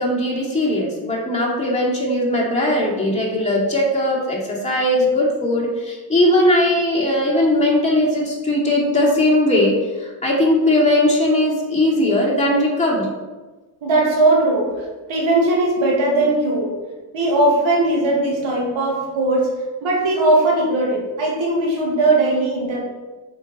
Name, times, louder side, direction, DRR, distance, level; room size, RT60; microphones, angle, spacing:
voice 1, 0.0-13.1, left 1 dB, 15° left, -5 dB, 2.5 m, -19 dB
voice 2, 13.8-14.7 15.1-16.7 17.1-19.5 19.8-22.8, right 2 dB, 80° right, -2 dB, 2.2 m, -18 dB
6.8 x 5.7 x 4.3 m, 1.2 s
cardioid pair, 80°, 46 cm